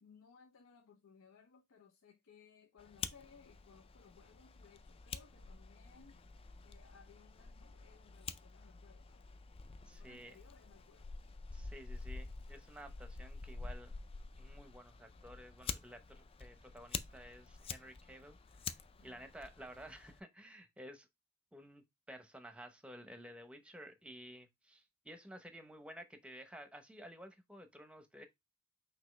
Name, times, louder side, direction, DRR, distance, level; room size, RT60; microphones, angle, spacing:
voice 1, 0.0-6.2 6.6-9.3 9.9-11.1 19.0-19.3, left 6 dB, 80° left, 0.6 m, -63 dB
Fire, 2.8-20.2, left 5 dB, 25° left, 0.3 m, -48 dB
voice 2, 9.8-10.4 11.5-13.9 14.4-18.6 19.0-21.1 21.5-28.3, equal, 5° right, 0.7 m, -53 dB
5.9 x 2.8 x 3.1 m
head